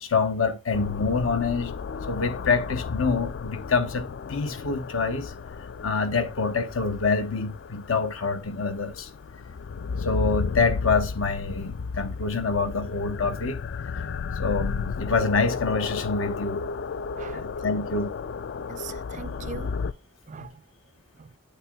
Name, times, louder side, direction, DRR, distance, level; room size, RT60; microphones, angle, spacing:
voice 1, 0.0-1.7 2.1-5.3 5.8-9.1 10.0-13.6 14.4-16.6 17.3-18.1 20.4-20.5, left 4 dB, 80° left, 1.0 m, -26 dB
sound 1, 0.7-19.9, left 5 dB, 55° left, 0.3 m, -33 dB
voice 2, 17.1-17.6 18.7-19.8 20.3-20.6 21.2-21.3, right 6 dB, 35° right, 0.3 m, -41 dB
8.5 x 6.7 x 2.2 m
head